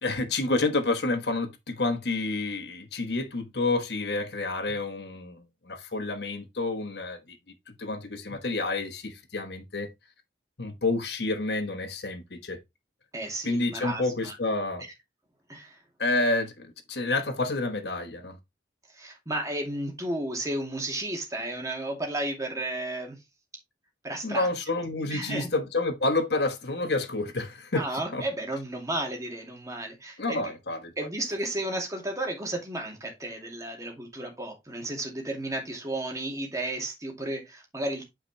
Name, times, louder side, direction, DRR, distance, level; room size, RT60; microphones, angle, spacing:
voice 1, 0.0-7.2 7.8-9.9 10.6-12.6 13.4-14.9 16.0-18.4 24.2-27.8 28.1-28.2 30.2-30.9, left 2 dB, 65° left, 1.2 m, -29 dB
voice 2, 13.1-14.3 15.5-15.8 18.9-23.2 24.0-24.5 25.1-25.5 27.7-30.5 31.0-38.0, right 1 dB, 20° right, 2.5 m, -33 dB
9.1 x 5.0 x 3.2 m
head